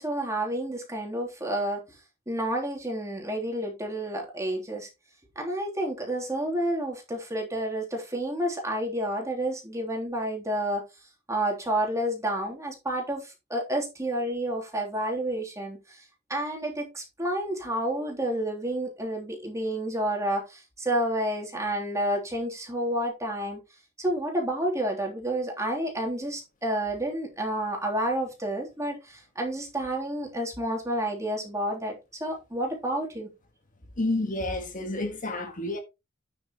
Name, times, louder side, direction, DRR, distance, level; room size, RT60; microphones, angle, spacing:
voice 1, 0.0-1.8 2.3-4.9 5.3-10.8 11.3-16.0 16.3-23.6 24.0-33.3, right 1 dB, 15° right, 3.2 m, -30 dB
voice 2, 34.0-35.8, left 2 dB, 40° left, 1.5 m, -29 dB
9.4 x 7.7 x 3.0 m
head